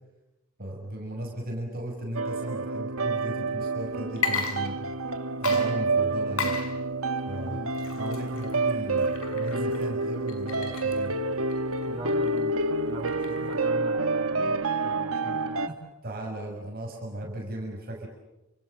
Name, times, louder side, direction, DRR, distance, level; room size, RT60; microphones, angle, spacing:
voice 1, 0.6-4.9 5.4-6.6 7.2-11.1 16.0-18.1, right 1 dB, 45° right, 0 dB, 6.7 m, -36 dB
sound 1, 2.1-15.7, right 3 dB, 90° right, 1.9 m, -28 dB
Water / Liquid, 4.1-5.1 5.4-13.7, left 5 dB, 75° left, 6.1 m, -36 dB
voice 2, 11.9-12.6 12.8-15.8 17.2-17.3, equal, 25° right, 0 dB, 7.7 m, -41 dB
30.0 x 28.0 x 6.9 m, 0.97 s
head